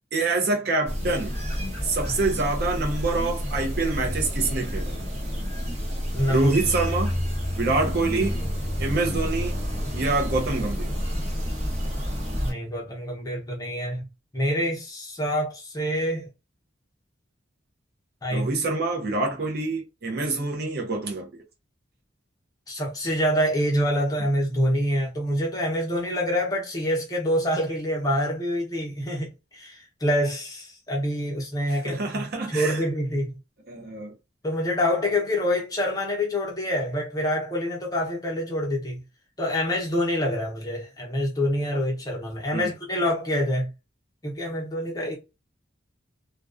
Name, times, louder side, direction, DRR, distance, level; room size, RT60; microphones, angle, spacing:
voice 1, 0.1-1.3 1.8-5.0 6.3-7.2 7.6-8.4 8.8-9.6 9.9-10.9 18.3-21.4 31.7-32.8 33.7-34.1 42.5-42.7, right 3 dB, 55° right, 0.6 m, -26 dB
sound 1, 0.9-12.5, equal, 35° right, 1.1 m, -29 dB
voice 2, 6.1-6.5 12.4-14.1 14.3-16.3 18.2-18.8 22.7-33.4 34.4-39.0 39.4-43.7 44.2-45.2, equal, 20° left, 0.7 m, -26 dB
2.3 x 2.2 x 2.4 m
head